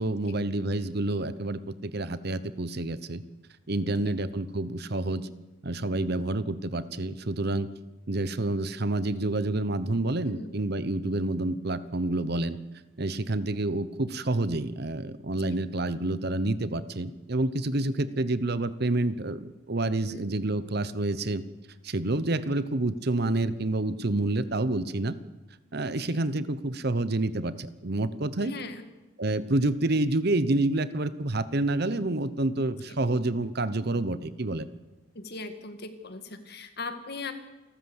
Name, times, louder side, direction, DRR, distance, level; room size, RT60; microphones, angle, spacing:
voice 1, 0.0-3.2 3.7-5.3 5.6-7.7 8.1-12.6 13.0-21.4 21.8-25.2 25.7-28.5 29.2-34.7, right 2 dB, 50° right, 15 dB, 1.0 m, -28 dB
voice 2, 3.8-4.1 10.3-10.5 20.0-20.3 26.1-26.2 28.4-28.8 32.9-33.0 35.1-37.3, left 3 dB, 50° left, 9 dB, 2.0 m, -39 dB
28.5 x 13.0 x 8.0 m, 1.1 s
head